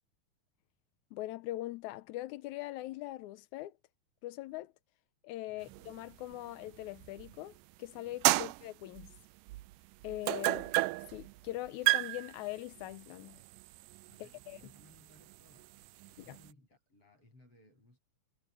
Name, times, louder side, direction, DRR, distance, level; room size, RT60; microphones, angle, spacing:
voice 1, 1.1-3.7 4.2-4.7 5.2-9.1 10.0-10.7 11.1-13.4 14.2-14.6 16.3-16.4, left 16 dB, 75° left, 1.8 m, -42 dB
voice 2, 5.5-5.8 8.4-8.5 14.1-18.0, left 1 dB, 40° left, 9.0 m, -63 dB
sound 1, 5.7-7.6 8.0-16.5, right 21 dB, 80° right, 2.0 m, -34 dB
omnidirectional pair, 3.9 m